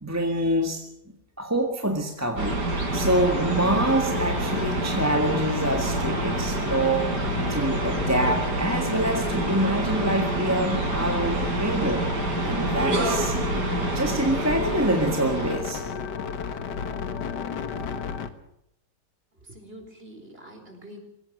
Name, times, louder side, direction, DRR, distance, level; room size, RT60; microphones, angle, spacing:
voice 1, 0.0-0.8 1.4-7.0 7.5-12.0 12.4-13.4 13.9-15.8, right 1 dB, 10° right, 3 dB, 1.7 m, -26 dB
sound 1, 2.4-15.5, right 2 dB, 80° right, 4.4 m, -27 dB
sound 2, 2.9-18.3, left 6 dB, 80° left, 2.0 m, -34 dB
voice 2, 19.3-21.0, equal, 35° right, 4 dB, 4.7 m, -45 dB
21.5 x 17.0 x 7.8 m, 0.78 s
omnidirectional pair, 1.8 m